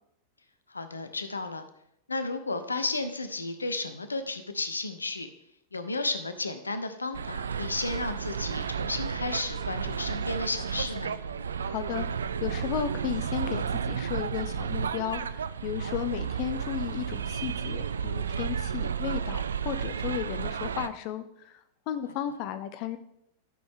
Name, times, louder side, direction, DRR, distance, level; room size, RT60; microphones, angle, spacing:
voice 1, 0.7-1.6 2.1-5.3 5.7-11.2, left 3 dB, 80° left, 10 dB, 0.8 m, -33 dB
sound 1, 7.1-20.9, right 7 dB, 70° right, 0.4 m, -32 dB
voice 2, 11.6-23.0, left 10 dB, 45° left, 10 dB, 0.6 m, -34 dB
12.0 x 6.2 x 3.7 m, 0.77 s
figure-of-eight pair, 90°, 0 cm